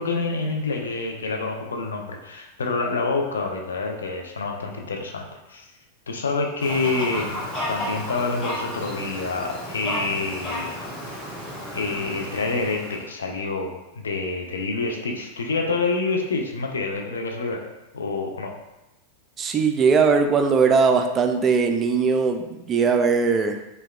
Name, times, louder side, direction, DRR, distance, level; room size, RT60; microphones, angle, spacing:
voice 1, 0.0-5.6 6.1-10.8 11.7-13.8 14.0-17.6 17.9-18.5, left 3 dB, 70° left, 2 dB, 0.4 m, -27 dB
Fowl, 6.6-13.1, equal, 30° left, 1.1 m, -33 dB
voice 2, 19.4-23.6, right 5 dB, 25° right, 6 dB, 0.3 m, -20 dB
4.5 x 2.2 x 2.3 m, 0.96 s
figure-of-eight pair, 90°, 0 cm